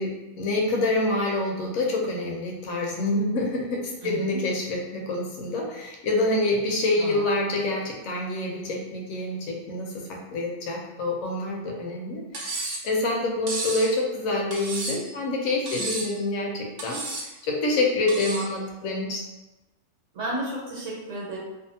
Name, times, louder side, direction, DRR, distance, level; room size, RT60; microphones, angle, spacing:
voice 1, 0.0-17.0 17.4-19.2, left 2 dB, 85° left, -1 dB, 1.0 m, -27 dB
voice 2, 4.0-4.4 7.0-7.2 20.1-21.4, right 1 dB, 70° right, -5 dB, 1.3 m, -32 dB
Cutlery silverware, 12.3-12.9 13.5-13.9 14.5-15.1 15.7-16.2 16.8-17.3 18.1-18.5, right 2 dB, 85° right, 0.3 m, -32 dB
2.6 x 2.4 x 2.6 m, 1.0 s
omnidirectional pair, 1.4 m